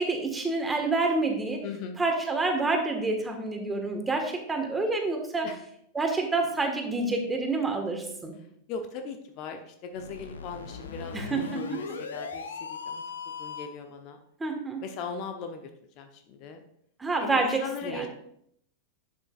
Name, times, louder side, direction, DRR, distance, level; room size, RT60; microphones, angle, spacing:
voice 1, 0.0-1.6 2.0-5.5 5.9-8.3 11.1-11.4 11.7-11.8 14.4-14.8 17.0-18.1, right 3 dB, 10° right, 3 dB, 1.7 m, -28 dB
voice 2, 1.6-2.0 5.4-5.6 8.7-13.0 13.4-14.2 14.8-15.6 16.0-16.6 17.2-18.1, left 5 dB, 40° left, 6 dB, 0.9 m, -39 dB
sound 1, 9.9-13.9, left 5 dB, 70° left, 0.8 m, -38 dB
11.0 x 7.5 x 2.5 m, 0.70 s
figure-of-eight pair, 90°, 0 cm